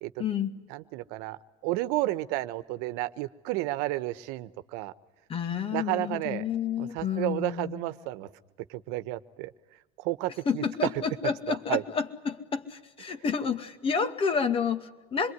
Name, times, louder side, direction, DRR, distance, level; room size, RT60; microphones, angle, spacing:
voice 1, 0.2-0.6 5.3-7.8 10.5-15.3, left 6 dB, 35° left, 9 dB, 2.2 m, -30 dB
voice 2, 0.7-4.9 5.7-6.4 6.8-8.3 8.7-9.5 10.0-10.9 11.5-11.8, right 17 dB, 80° right, 13 dB, 1.1 m, -31 dB
26.5 x 22.5 x 9.6 m, 1.0 s
cardioid pair, 125°, 16 cm